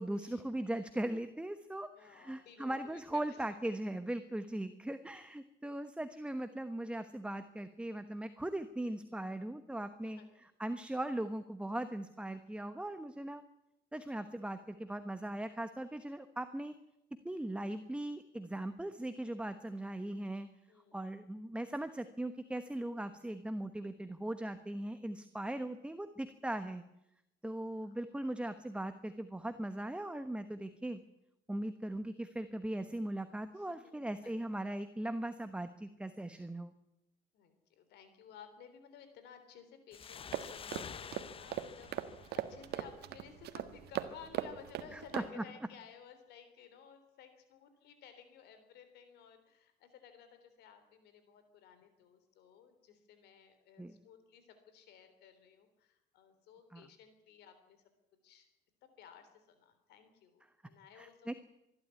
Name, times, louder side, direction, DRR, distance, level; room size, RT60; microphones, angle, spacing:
voice 1, 0.0-10.2 10.6-13.4 13.9-16.7 17.2-20.5 20.9-26.8 27.4-31.0 31.5-36.7 44.9-45.4 53.8-54.0 56.7-56.9 61.0-61.3, right 1 dB, 5° right, 10 dB, 1.1 m, -39 dB
voice 2, 1.9-3.5 10.0-10.5 15.2-15.3 20.7-21.1 27.6-28.0 33.5-34.5 37.3-57.8 58.2-58.5 59.0-61.3, left 7 dB, 80° left, 9 dB, 3.5 m, -57 dB
sound 1, 39.9-43.3, left 7 dB, 35° left, 0.7 m, -49 dB
sound 2, 40.3-45.3, right 11 dB, 70° right, 1.5 m, -40 dB
24.5 x 12.5 x 9.7 m, 0.86 s
cardioid pair, 110°, 17 cm